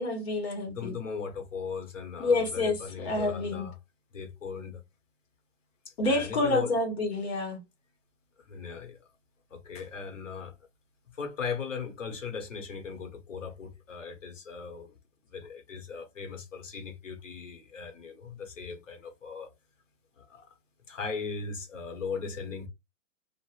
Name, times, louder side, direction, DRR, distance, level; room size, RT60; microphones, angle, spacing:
voice 1, 0.0-0.9 2.2-3.7 6.0-7.6, left 2 dB, 55° left, 1.3 m, -28 dB
voice 2, 0.7-3.8 4.1-4.8 5.9-6.7 8.4-9.0 9.5-10.5 11.1-15.0 15.3-19.5 20.2-20.5 20.9-22.7, left 5 dB, 80° left, 1.3 m, -38 dB
3.4 x 2.5 x 2.4 m
hypercardioid pair, 135°, 38 cm